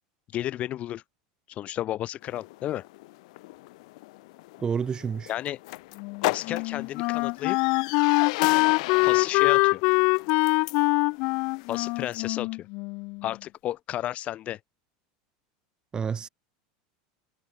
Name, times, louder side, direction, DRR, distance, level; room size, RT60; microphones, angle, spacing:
voice 1, 0.3-1.0 1.5-2.9 5.3-5.6 6.2-7.6 9.0-9.8 11.7-12.7 13.2-14.6, left 13 dB, 40° left, 4.6 m, -32 dB
sound 1, 2.2-12.3, left 22 dB, 70° left, 7.4 m, -37 dB
voice 2, 4.6-5.3 15.9-16.3, right 6 dB, 20° right, 3.6 m, -29 dB
Wind instrument woodwind instrument, 6.0-13.3, left 27 dB, 55° left, 3.0 m, -24 dB
supercardioid pair, 135°, 4 cm